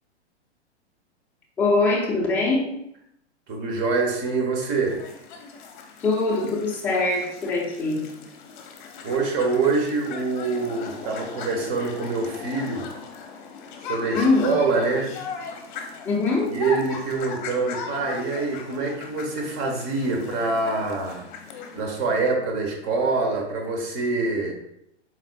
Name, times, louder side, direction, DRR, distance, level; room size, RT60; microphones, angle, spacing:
voice 1, 1.6-2.7 6.0-8.1 14.1-14.5 16.0-16.5, left 3 dB, 5° left, -4 dB, 0.4 m, -22 dB
voice 2, 3.5-5.0 9.0-12.9 13.9-15.1 16.5-21.2 21.7-24.5, right 3 dB, 30° right, 2 dB, 0.9 m, -25 dB
sound 1, 4.8-21.8, left 5 dB, 45° left, 0.7 m, -38 dB
4.3 x 3.9 x 2.3 m, 0.79 s
hypercardioid pair, 130°, 34 cm